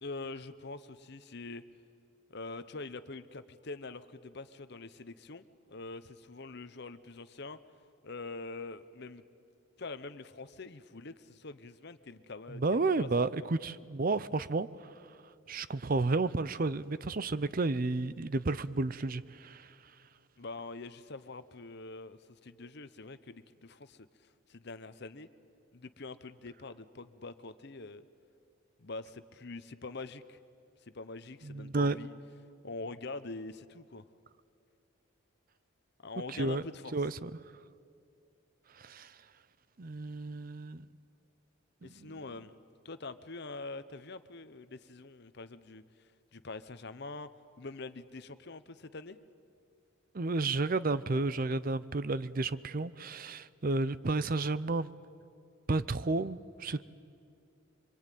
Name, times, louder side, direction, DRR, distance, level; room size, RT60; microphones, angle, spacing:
voice 1, 0.0-1.6 2.3-7.6 8.0-9.2 9.8-13.5 20.4-25.3 25.7-28.1 28.8-30.4 30.8-32.1 32.6-34.1 36.0-36.9 41.8-42.5 42.8-47.3 47.6-49.2, left 3 dB, 50° left, 12 dB, 0.9 m, -44 dB
voice 2, 12.5-14.9 15.5-19.7 31.4-32.0 36.3-36.6 36.9-37.3 38.7-39.2 39.8-40.8 41.8-41.9 50.1-54.9 55.7-56.9, right 3 dB, 40° right, 16 dB, 0.6 m, -32 dB
25.0 x 24.5 x 9.2 m, 2.4 s
head